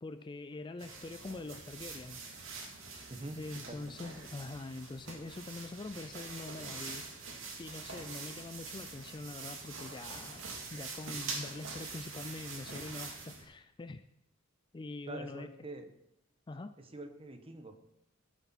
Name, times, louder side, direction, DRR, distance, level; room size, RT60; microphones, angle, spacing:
voice 1, 0.0-2.2 3.4-7.1 7.6-10.4 10.7-14.0 14.7-15.5 16.5-16.7, left 2 dB, 25° left, 11 dB, 0.4 m, -44 dB
sound 1, 0.8-13.4, right 4 dB, 85° right, 2.7 m, -45 dB
voice 2, 3.1-3.8 15.1-15.9 16.8-17.8, right 2 dB, 30° right, 7 dB, 1.2 m, -45 dB
16.5 x 8.1 x 4.2 m, 0.80 s
head